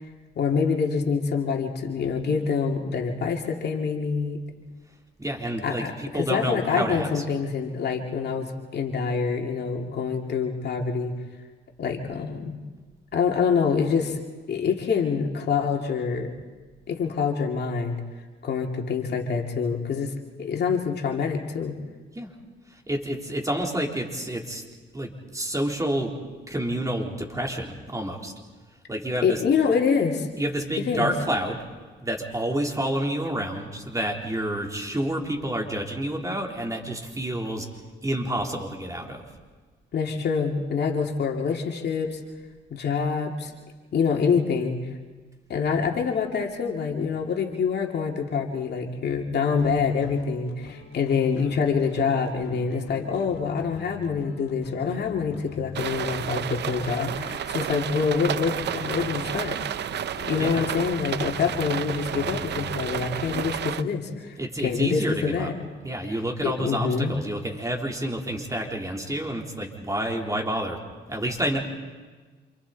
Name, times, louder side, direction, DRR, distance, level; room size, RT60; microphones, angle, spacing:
voice 1, 0.4-4.4 5.6-11.1 11.8-12.6 13.1-14.2 14.5-16.3 16.9-18.0 18.4-21.7 29.2-30.3 30.8-31.1 39.9-42.2 42.7-43.5 43.9-44.8 45.5-59.6 60.3-65.5 66.1-66.2 66.4-67.1, left 5 dB, 55° left, 1 dB, 2.5 m, -26 dB
voice 2, 5.2-7.2 22.1-22.3 22.9-24.6 24.9-26.1 26.5-28.3 28.9-29.4 30.4-31.6 32.0-37.7 38.0-39.2 60.4-60.6 64.4-65.5 65.8-70.8 71.1-71.6, right 1 dB, 15° right, 0 dB, 3.7 m, -29 dB
sound 1, 49.6-63.7, left 6 dB, 85° left, 2.4 m, -42 dB
sound 2, 55.8-63.8, right 10 dB, 60° right, 0.7 m, -31 dB
28.5 x 28.0 x 4.2 m, 1.4 s
cardioid pair, 90°, 20 cm